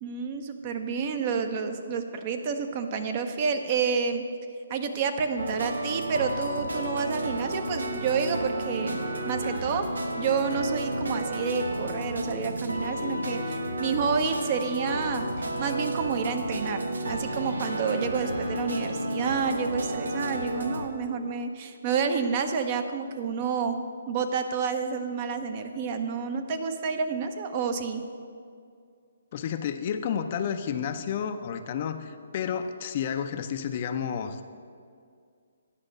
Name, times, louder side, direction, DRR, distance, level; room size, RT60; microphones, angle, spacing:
voice 1, 0.0-4.2 4.7-9.9 10.2-23.8 24.1-28.0, right 5 dB, 35° right, 7 dB, 0.7 m, -29 dB
Mystery Solved (loop), 5.4-20.9, right 1 dB, 85° right, 0.9 m, -32 dB
voice 2, 29.3-34.4, left 8 dB, 40° left, 8 dB, 0.5 m, -31 dB
9.9 x 5.1 x 6.5 m, 2.2 s
hypercardioid pair, 145°, 0 cm